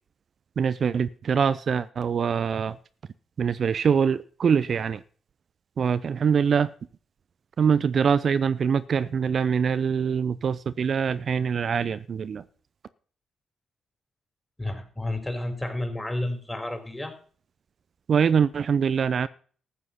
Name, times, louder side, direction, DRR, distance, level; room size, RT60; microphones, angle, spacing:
voice 1, 0.6-2.8 3.4-5.0 5.8-6.7 7.6-12.4 18.1-19.3, right 6 dB, 55° right, 15 dB, 0.5 m, -24 dB
voice 2, 14.6-17.1, left 1 dB, 15° left, 7 dB, 3.9 m, -31 dB
14.0 x 7.6 x 5.7 m, 0.43 s
hypercardioid pair, 40°, 0 cm